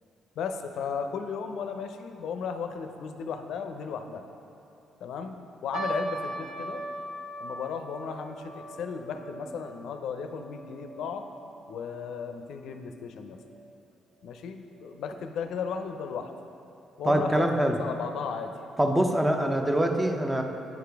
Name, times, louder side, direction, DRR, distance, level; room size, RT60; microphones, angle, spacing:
voice 1, 0.4-4.2 5.0-6.8 7.4-11.3 11.7-13.4 14.2-16.3 17.0-18.5, left 6 dB, 75° left, 7 dB, 0.4 m, -35 dB
sound 1, 5.7-12.2 12.5-12.6 13.3-13.6 14.2-14.3 14.7-14.8, right 1 dB, 70° right, 0.9 m, -39 dB
voice 2, 17.1-17.8 18.8-20.4, right 1 dB, 10° right, 4 dB, 0.6 m, -24 dB
9.3 x 4.9 x 3.4 m, 2.8 s
cardioid pair, 90°, 0 cm